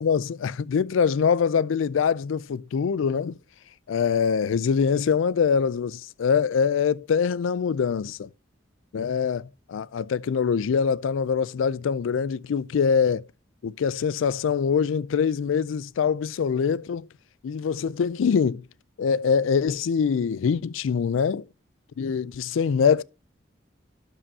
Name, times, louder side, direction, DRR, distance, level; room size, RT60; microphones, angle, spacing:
voice 1, 0.0-3.4 3.9-8.3 8.9-13.2 13.6-17.1 17.4-18.6 19.0-21.4 22.0-23.0, left 6 dB, 90° left, 0.4 m, -24 dB
12.0 x 5.6 x 2.7 m
head